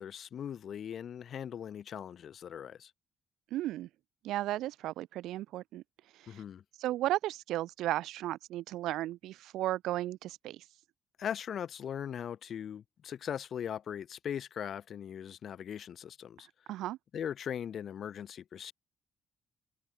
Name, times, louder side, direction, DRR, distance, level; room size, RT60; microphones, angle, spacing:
voice 1, 0.0-2.9 6.3-6.6 11.2-16.5 17.1-18.7, left 9 dB, 60° left, 6.7 m, -39 dB
voice 2, 3.5-3.9 4.2-5.8 6.2-6.4 6.8-10.6 16.7-17.0, right 15 dB, 85° right, 5.0 m, -34 dB
cardioid pair, 90°, 0 cm